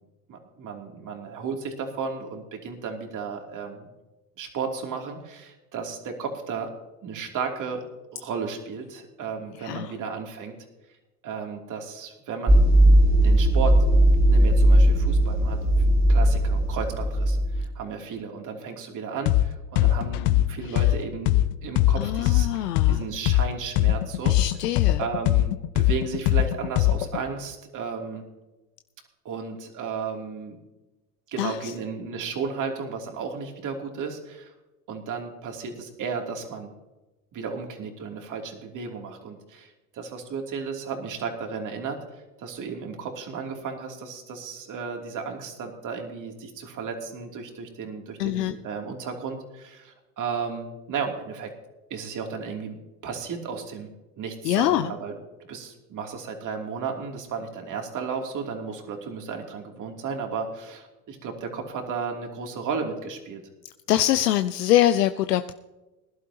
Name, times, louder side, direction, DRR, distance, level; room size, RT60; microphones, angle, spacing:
voice 1, 0.3-3.9 4.4-6.7 7.0-7.8 8.1-10.5 11.2-12.7 13.2-13.7 14.3-15.6 16.1-21.3 21.6-24.4 25.0-28.2 29.2-30.6 31.3-34.5 34.9-36.7 37.3-51.5 51.9-52.8 53.0-53.9 54.2-55.1 55.5-63.4, right 5 dB, 40° right, 2 dB, 3.0 m, -34 dB
sound 1, 12.5-17.6, right 1 dB, 25° right, 3.5 m, -18 dB
sound 2, 19.3-19.4 19.8-23.4 23.8-27.2, left 14 dB, 55° left, 0.8 m, -20 dB
voice 2, 22.0-23.0 24.2-25.0 31.4-31.5 48.2-48.5 54.4-54.9 63.9-65.5, left 13 dB, 80° left, 10 dB, 0.7 m, -23 dB
21.0 x 11.5 x 2.9 m, 1.0 s
hypercardioid pair, 85°, 46 cm